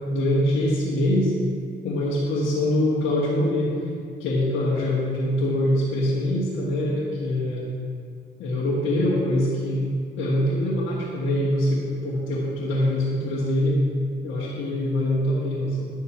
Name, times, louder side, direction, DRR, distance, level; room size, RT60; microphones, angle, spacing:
voice 1, 0.1-1.3 1.8-3.7 4.2-7.7 8.4-9.9 10.2-13.8 14.2-15.9, left 1 dB, 85° left, -7 dB, 1.5 m, -24 dB
10.0 x 6.7 x 4.3 m, 2.2 s
cardioid pair, 90°, 20 cm